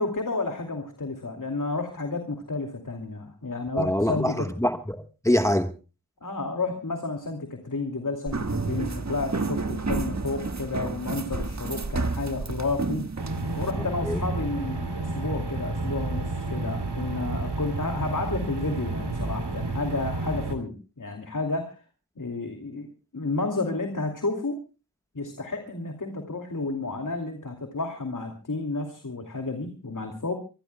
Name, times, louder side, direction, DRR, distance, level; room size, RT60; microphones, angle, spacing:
voice 1, 0.0-4.5 6.2-13.1 13.5-21.8 22.2-22.9 23.1-24.6 25.1-30.3, left 3 dB, 50° left, 2.5 m, -31 dB
voice 2, 3.8-5.7 14.0-14.2, equal, 10° left, 1.2 m, -24 dB
sound 1, 8.3-13.7, right 3 dB, 45° right, 1.4 m, -30 dB
sound 2, 13.2-20.6, right 2 dB, 80° right, 2.6 m, -31 dB
25.0 x 20.0 x 2.2 m
wide cardioid pair, 55°, 39 cm